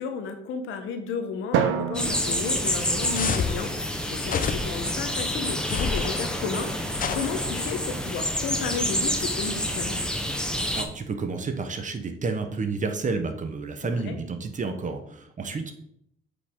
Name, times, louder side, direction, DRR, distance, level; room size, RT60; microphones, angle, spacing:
voice 1, 0.0-10.0 13.8-14.2, left 5 dB, 90° left, 7 dB, 1.1 m, -33 dB
Drum, 1.5-3.8, right 8 dB, 85° right, 0.7 m, -29 dB
sound 1, 1.9-10.8, equal, 5° left, 1.0 m, -28 dB
sound 2, 3.1-3.6 4.2-4.9 5.6-6.2 7.0-7.8, left 6 dB, 45° left, 0.7 m, -29 dB
voice 2, 10.7-15.7, right 4 dB, 40° right, 7 dB, 1.1 m, -30 dB
7.8 x 5.2 x 3.8 m, 0.73 s
cardioid pair, 90°, 20 cm